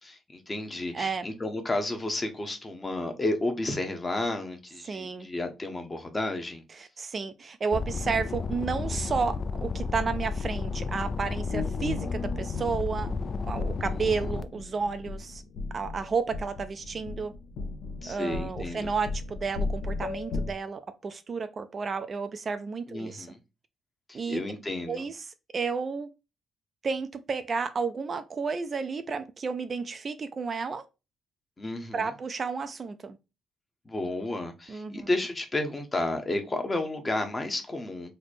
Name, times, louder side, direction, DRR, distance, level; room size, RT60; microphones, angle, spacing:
voice 1, 0.0-6.6 13.8-14.3 18.0-18.9 22.9-23.4 24.1-25.1 31.6-32.1 33.9-38.1, left 2 dB, 25° left, 0.8 m, -32 dB
voice 2, 0.9-1.3 4.9-5.3 6.8-13.1 13.5-15.4 15.7-17.3 18.1-23.3 24.1-24.4 24.9-25.1 25.5-26.1 26.8-30.8 31.9-33.2 34.7-35.1, right 5 dB, 40° right, 0.4 m, -32 dB
sound 1, 7.7-14.4, left 4 dB, 45° left, 0.3 m, -32 dB
sound 2, 11.5-20.5, left 3 dB, 70° left, 0.6 m, -36 dB
3.2 x 2.0 x 4.1 m
cardioid pair, 90°, 0 cm